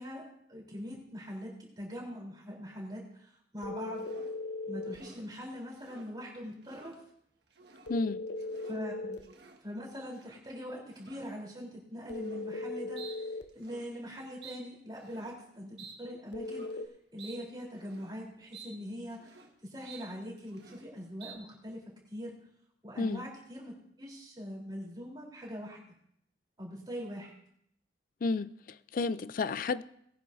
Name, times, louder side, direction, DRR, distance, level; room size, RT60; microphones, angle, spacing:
voice 1, 0.0-4.1 4.7-7.0 8.6-9.2 9.6-16.8 17.1-22.3 22.8-25.8 26.6-27.3, equal, 25° right, 3.6 m, -42 dB
sound 1, 3.6-5.0 7.9-9.3 12.1-13.5 16.3-16.9, left 2 dB, 75° left, 0.7 m, -38 dB
sound 2, 3.9-4.4 4.8-5.2 5.7-6.1 6.5-7.0 7.5-7.9 8.3-8.8 9.1-9.6 10.1-10.4 10.9-11.3 12.1-12.5 13.0-13.2 13.5-13.9 14.4-14.6 15.0-15.4 15.8-16.0 16.4-16.7 17.2-17.4 17.7-18.2 18.5-18.7 19.0-19.5 19.8-20.1 20.4-20.9 21.2-21.3, right 5 dB, 65° right, 1.6 m, -52 dB
voice 2, 7.9-8.2 23.0-23.3 28.2-29.8, left 3 dB, 50° left, 0.4 m, -32 dB
19.5 x 10.0 x 2.7 m
head